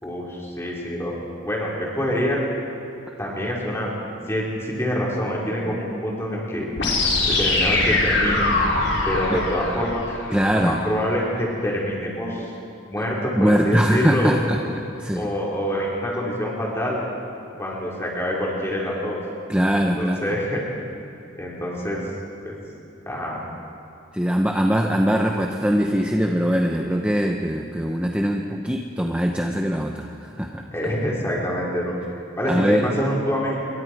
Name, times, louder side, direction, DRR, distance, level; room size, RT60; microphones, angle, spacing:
voice 1, 0.0-1.1 1.4-2.4 3.2-3.9 4.3-6.7 7.3-8.5 9.0-10.0 10.5-12.5 12.9-14.4 15.1-17.0 17.6-19.2 20.0-20.6 21.3-22.0 22.4-22.5 23.1-23.4 30.7-31.9 32.4-33.6, equal, 15° left, -5 dB, 4.8 m, -26 dB
sound 1, 6.8-10.8, left 2 dB, 75° left, 4.8 m, -22 dB
voice 2, 10.3-10.8 13.4-15.3 19.5-20.3 24.1-30.6 32.5-32.9, equal, 5° right, 2 dB, 0.9 m, -22 dB
27.5 x 23.0 x 4.8 m, 2.8 s
head